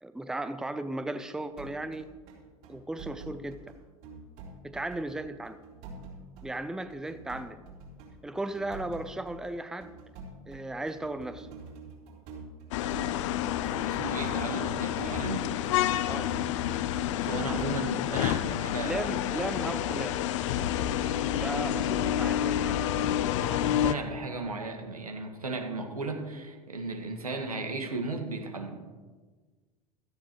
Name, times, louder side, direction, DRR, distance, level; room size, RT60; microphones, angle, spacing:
voice 1, 0.0-2.1 2.7-3.6 4.6-5.6 6.4-7.6 8.2-9.9 10.5-11.5 14.8-15.0 16.1-16.3 18.8-20.2 21.4-22.8, right 2 dB, 5° right, 11 dB, 0.7 m, -36 dB
sound 1, 1.4-18.0, right 3 dB, 50° right, 4.0 m, -46 dB
sound 2, 12.7-23.9, left 11 dB, 55° left, 0.7 m, -29 dB
voice 2, 13.8-15.5 17.2-19.0 21.0-21.2 21.5-21.8 23.4-28.8, right 3 dB, 85° right, 3 dB, 1.9 m, -36 dB
16.5 x 14.0 x 3.2 m, 1.4 s
figure-of-eight pair, 80°, 18 cm